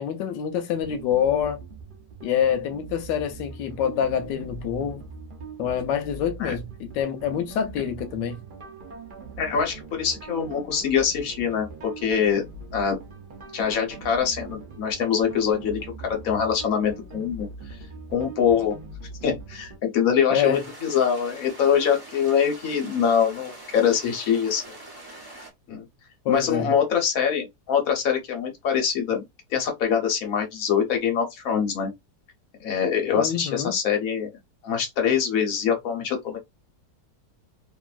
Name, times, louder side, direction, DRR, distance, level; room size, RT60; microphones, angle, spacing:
voice 1, 0.0-1.6 2.2-5.0 5.6-8.4 20.3-20.6 26.2-26.7 33.2-33.8, left 8 dB, 90° left, 1.3 m, -26 dB
sound 1, 0.7-19.8, right 3 dB, 70° right, 0.4 m, -41 dB
voice 2, 9.4-12.5 12.7-13.0 13.5-17.5 18.1-18.8 19.2-24.6 25.7-25.8 26.3-29.2 29.5-31.9 32.6-34.3 34.6-36.4, left 7 dB, 55° left, 1.3 m, -24 dB
sound 2, 20.5-25.5, right 2 dB, 20° right, 0.7 m, -44 dB
2.9 x 2.6 x 2.4 m
omnidirectional pair, 1.9 m